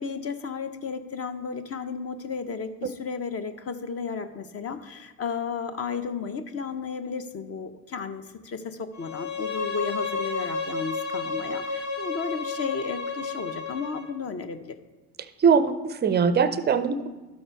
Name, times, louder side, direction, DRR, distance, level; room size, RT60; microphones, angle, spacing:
voice 1, 0.0-14.8, left 5 dB, 30° left, 10 dB, 0.7 m, -33 dB
Bowed string instrument, 8.9-14.1, left 4 dB, 90° left, 1.4 m, -31 dB
voice 2, 15.4-17.1, right 6 dB, 20° right, 12 dB, 0.4 m, -21 dB
12.5 x 4.3 x 4.5 m, 1.2 s
hypercardioid pair, 80°, 47 cm